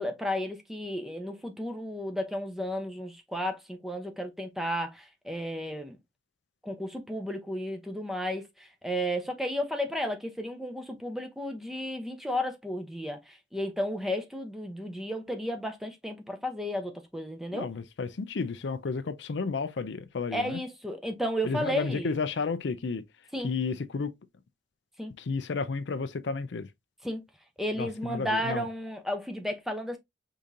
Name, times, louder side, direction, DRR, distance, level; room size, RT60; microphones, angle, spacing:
voice 1, 0.0-6.0 6.6-17.7 20.3-22.2 23.3-23.5 25.0-25.1 27.0-27.2 27.6-30.0, equal, ahead, 0.8 m, -33 dB
voice 2, 17.5-20.6 21.4-23.0 23.4-24.1 25.2-26.7 27.8-28.6, left 4 dB, 70° left, 0.5 m, -32 dB
5.1 x 3.7 x 2.7 m
head